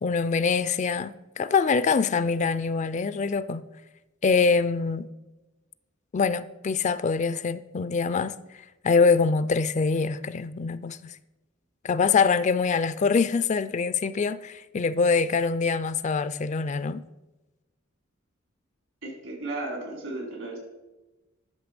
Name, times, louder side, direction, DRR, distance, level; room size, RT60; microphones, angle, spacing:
voice 1, 0.0-3.6 4.2-5.1 6.1-8.3 8.8-11.2 11.8-17.0, left 5 dB, 35° left, 0.4 m, -24 dB
voice 2, 19.0-20.6, right 2 dB, 85° right, 3.7 m, -34 dB
11.5 x 6.5 x 5.1 m
head